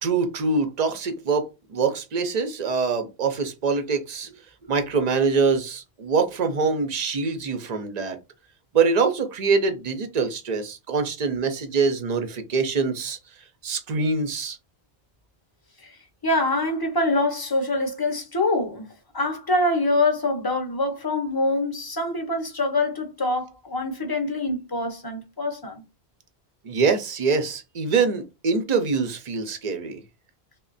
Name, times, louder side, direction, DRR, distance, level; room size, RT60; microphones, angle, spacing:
voice 1, 0.0-4.3 4.7-8.2 8.7-13.2 13.6-14.6 26.6-30.0, right 4 dB, 45° right, 0.7 m, -24 dB
voice 2, 16.2-18.8 19.1-25.8, left 2 dB, 25° left, 0.7 m, -25 dB
3.2 x 2.1 x 3.9 m
omnidirectional pair, 1.1 m